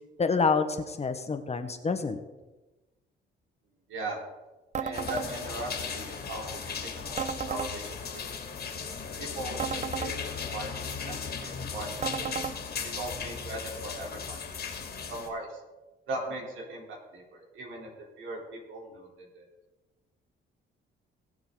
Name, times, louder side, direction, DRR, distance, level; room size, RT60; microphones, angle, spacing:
voice 1, 0.2-2.2, left 4 dB, 30° left, 8 dB, 1.2 m, -27 dB
sound 1, 4.7-5.3 7.2-7.7 9.6-10.1 12.0-12.6, right 7 dB, 35° right, 0.6 m, -33 dB
voice 2, 4.8-8.4 9.2-12.3 12.8-15.6 16.1-19.5, right 2 dB, 75° right, -2 dB, 4.0 m, -39 dB
sound 2, 4.9-15.3, left 6 dB, 55° left, 2.6 m, -37 dB
20.0 x 7.1 x 3.9 m, 1.1 s
cardioid pair, 90°, 20 cm